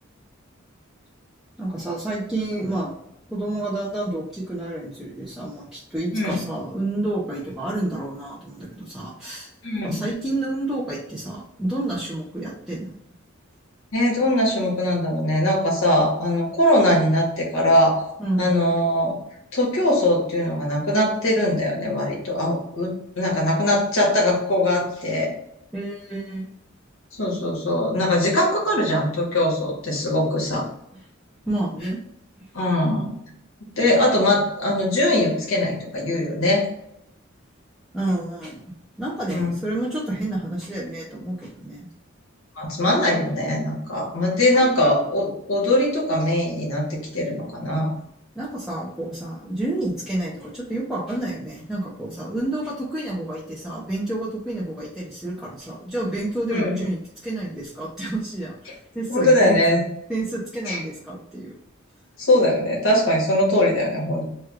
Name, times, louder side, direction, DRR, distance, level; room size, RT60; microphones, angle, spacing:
voice 1, 1.6-3.0 3.3-9.5 9.8-12.9 18.2-18.5 25.7-26.5 31.5-32.0 32.4-32.5 37.9-41.9 44.5-44.7 48.3-59.6 60.1-61.5, right 1 dB, ahead, -7 dB, 0.5 m, -29 dB
voice 2, 6.1-6.4 9.6-10.0 13.9-18.0 18.4-19.1 19.5-25.3 27.1-30.7 32.5-33.1 33.6-36.7 39.3-39.5 42.5-47.9 56.5-56.7 59.1-59.8 60.6-60.8 62.2-64.3, left 1 dB, 90° left, -2 dB, 1.2 m, -21 dB
3.3 x 2.2 x 3.4 m, 0.78 s
head